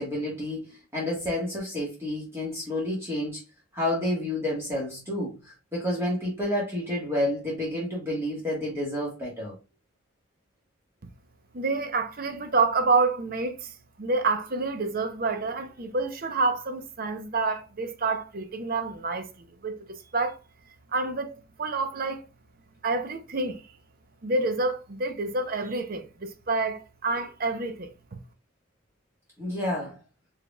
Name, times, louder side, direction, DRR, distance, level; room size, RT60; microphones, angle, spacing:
voice 1, 0.0-3.4 3.7-9.5 29.4-30.0, left 1 dB, 15° right, 1.4 m, -30 dB
voice 2, 11.5-13.7 14.0-19.3 19.6-20.4 20.9-22.2 22.8-23.6 24.2-27.9, right 3 dB, 45° right, 0.7 m, -28 dB
4.8 x 3.5 x 2.3 m
head